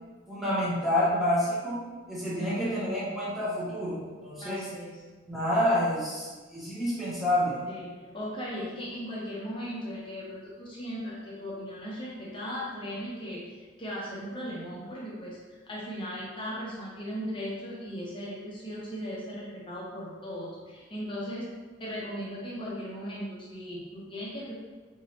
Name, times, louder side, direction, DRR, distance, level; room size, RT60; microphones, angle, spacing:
voice 1, 0.3-1.8 2.1-4.6 5.3-7.6, left 1 dB, ahead, -9 dB, 1.0 m, -28 dB
voice 2, 2.4-2.9 4.4-5.0 7.7-15.4 15.7-21.5 21.8-24.5, equal, 25° left, -5 dB, 0.7 m, -37 dB
4.0 x 3.5 x 3.0 m, 1.3 s
head